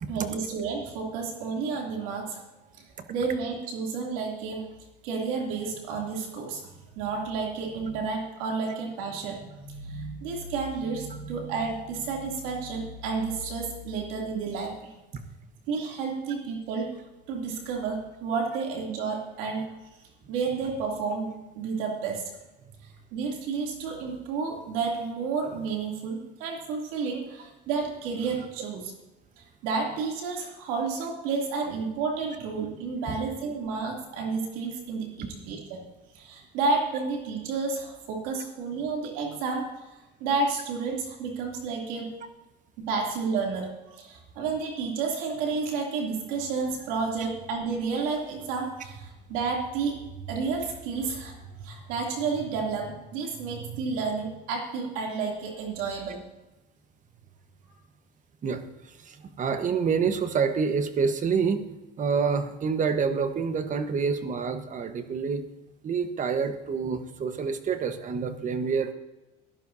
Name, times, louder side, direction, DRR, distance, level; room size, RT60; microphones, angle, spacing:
voice 1, 0.1-2.4 3.1-4.7 5.0-6.6 7.0-14.9 15.7-16.9 17.3-19.7 20.3-22.2 23.1-28.8 29.6-35.8 36.1-39.7 40.2-42.1 42.8-50.0 50.3-56.2, right 4 dB, 85° right, 0 dB, 2.9 m, -31 dB
voice 2, 58.4-61.7 62.0-65.4 65.8-68.9, right 5 dB, 40° right, 9 dB, 1.3 m, -27 dB
16.5 x 11.5 x 2.7 m, 1.0 s
cardioid pair, 105°, 19 cm